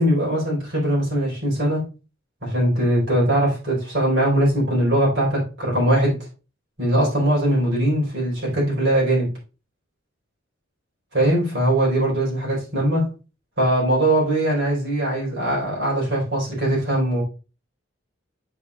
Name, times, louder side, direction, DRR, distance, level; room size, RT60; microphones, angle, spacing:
voice 1, 0.0-1.8 2.4-6.2 6.8-9.3 11.1-13.1 13.6-17.2, right 1 dB, 55° right, -4 dB, 4.6 m, -21 dB
8.1 x 6.8 x 2.5 m, 0.33 s
head